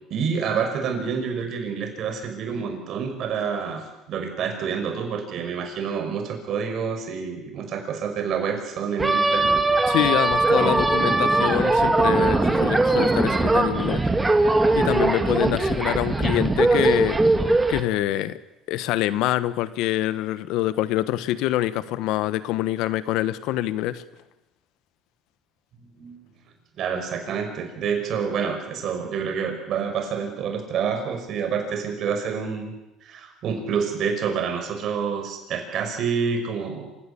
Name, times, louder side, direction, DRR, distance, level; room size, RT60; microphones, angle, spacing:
voice 1, 0.1-9.6 25.9-26.3 26.8-32.7 33.0-36.9, right 6 dB, 55° right, 6.1 m, -28 dB
sound 1, 9.0-17.8, right 2 dB, 15° right, 2.2 m, -20 dB
voice 2, 9.9-14.1 14.7-18.4 18.7-24.0, left 14 dB, 75° left, 1.2 m, -25 dB
27.0 x 17.0 x 8.7 m
cardioid pair, 110°, 0 cm